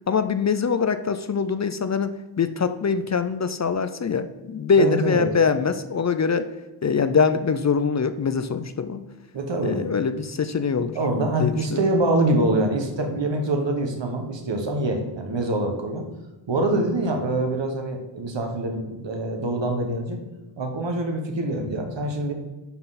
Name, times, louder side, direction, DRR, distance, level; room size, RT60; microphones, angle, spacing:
voice 1, 0.1-6.5 6.8-9.0 9.6-11.0 11.4-11.8 16.7-16.8, left 5 dB, 40° left, 11 dB, 0.5 m, -23 dB
voice 2, 4.8-5.3 9.3-9.9 10.9-16.1 16.5-20.2 20.6-22.3, right 1 dB, 70° right, 4 dB, 1.4 m, -25 dB
9.9 x 3.8 x 4.1 m, 1.1 s
cardioid pair, 55°, 46 cm